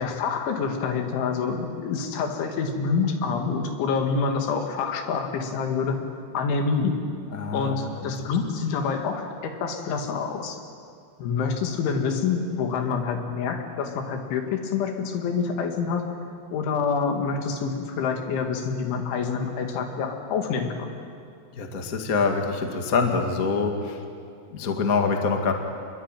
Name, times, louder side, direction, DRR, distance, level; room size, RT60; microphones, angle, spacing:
voice 1, 0.0-6.0 6.3-6.9 7.5-10.6 11.2-16.0 16.5-20.7, left 5 dB, 75° left, 4 dB, 4.5 m, -27 dB
voice 2, 7.3-8.1 21.5-24.0 24.5-25.5, left 4 dB, 50° left, 4 dB, 1.0 m, -25 dB
26.0 x 22.0 x 9.2 m, 2.4 s
omnidirectional pair, 5.5 m